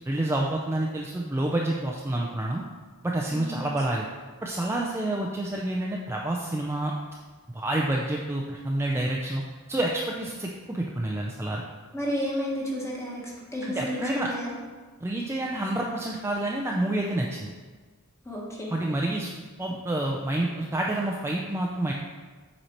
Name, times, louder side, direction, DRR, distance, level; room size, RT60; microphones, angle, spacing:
voice 1, 0.1-2.6 3.0-4.1 4.4-6.9 7.5-9.4 9.7-11.6 13.6-14.3 15.0-17.5 18.7-19.3 19.6-21.9, right 1 dB, 10° right, -2 dB, 0.4 m, -28 dB
voice 2, 3.3-3.6 11.9-13.2 13.5-14.6 18.2-18.7, equal, 15° left, -3 dB, 1.4 m, -31 dB
7.9 x 4.3 x 4.4 m, 1.4 s
head